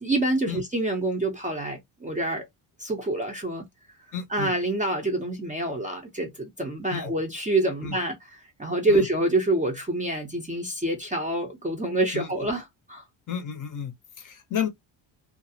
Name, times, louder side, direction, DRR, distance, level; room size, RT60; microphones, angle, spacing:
voice 1, 0.0-2.5 2.8-3.7 4.3-13.0, right 2 dB, 15° right, 0.4 m, -27 dB
voice 2, 4.1-4.5 6.9-7.1 7.8-7.9 8.9-9.0 12.1-12.3 13.3-13.9 14.2-14.7, left 8 dB, 40° left, 0.6 m, -31 dB
2.3 x 2.0 x 2.6 m
cardioid pair, 130°, 49 cm